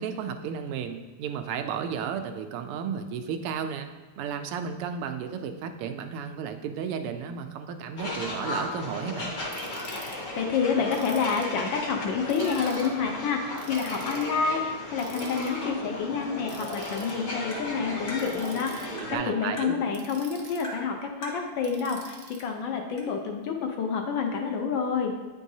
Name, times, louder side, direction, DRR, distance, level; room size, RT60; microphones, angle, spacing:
voice 1, 0.0-3.9 4.2-9.4 18.9-19.8, right 7 dB, 90° right, 7 dB, 1.5 m, -33 dB
sound 1, 8.0-19.2, left 2 dB, 50° left, 1.4 m, -35 dB
Ratchet pawl, 9.5-10.1 10.9-11.6 12.3-12.9 13.6-14.3 15.0-15.5 16.5-17.1 18.2-18.9 19.9-20.7 21.6-22.4, right 4 dB, 65° right, 0.8 m, -47 dB
voice 2, 10.3-25.1, left 5 dB, 70° left, 3 dB, 1.2 m, -28 dB
Tap, 17.5-17.6 18.1-18.2 19.0-19.1 19.6-19.7 20.6-20.8 21.2-21.4 22.4-22.5 23.0-23.1, right 2 dB, 35° left, 1.0 m, -40 dB
9.0 x 4.6 x 2.7 m, 1.3 s
omnidirectional pair, 2.4 m